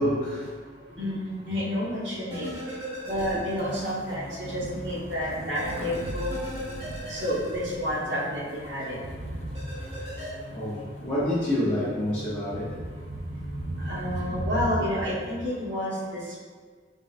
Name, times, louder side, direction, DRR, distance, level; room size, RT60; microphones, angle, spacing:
voice 1, 0.0-1.1 5.8-5.9 9.6-9.9 10.2-12.8 13.8-13.9, left 1 dB, 25° left, -11 dB, 0.9 m, -29 dB
voice 2, 1.0-2.5 3.0-6.3 7.1-9.0 13.9-16.4, equal, 85° right, -7 dB, 1.3 m, -30 dB
Thunder, 1.5-15.2, right 1 dB, 60° right, 0.4 m, -39 dB
sound 1, 2.3-4.0 4.3-4.4 5.5-8.4 9.5-10.3, right 1 dB, 35° right, 1.5 m, -38 dB
sound 2, 3.6-14.5, left 1 dB, 40° left, 0.5 m, -42 dB
4.2 x 3.8 x 2.5 m, 1.5 s
head